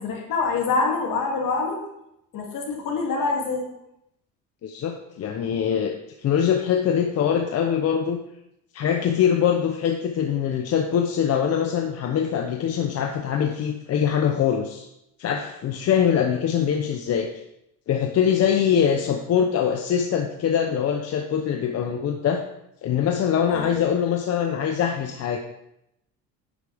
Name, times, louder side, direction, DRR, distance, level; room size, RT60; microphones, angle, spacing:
voice 1, 0.0-1.8 2.3-3.7 23.5-23.9, left 4 dB, 60° left, -1 dB, 2.7 m, -25 dB
voice 2, 4.6-8.2 8.7-14.9 15.2-17.3 17.9-22.4 22.8-25.4, left 8 dB, 45° left, 4 dB, 0.8 m, -23 dB
10.5 x 8.1 x 3.5 m, 0.82 s
cardioid pair, 135°, 36 cm